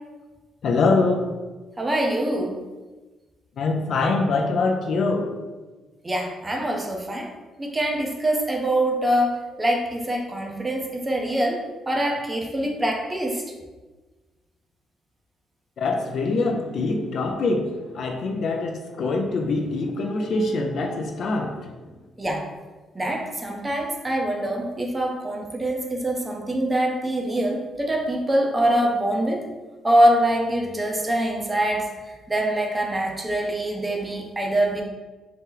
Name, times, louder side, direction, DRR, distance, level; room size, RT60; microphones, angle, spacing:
voice 1, 0.6-1.3 3.6-5.3 15.8-21.7, left 3 dB, 60° left, 3 dB, 0.4 m, -24 dB
voice 2, 1.8-2.6 6.0-7.3 7.6-13.4 22.2-22.4 22.9-29.4 29.8-31.9 32.3-34.8, right 1 dB, 20° right, 0 dB, 0.6 m, -24 dB
2.8 x 2.0 x 3.8 m, 1.2 s
cardioid pair, 90°, 0 cm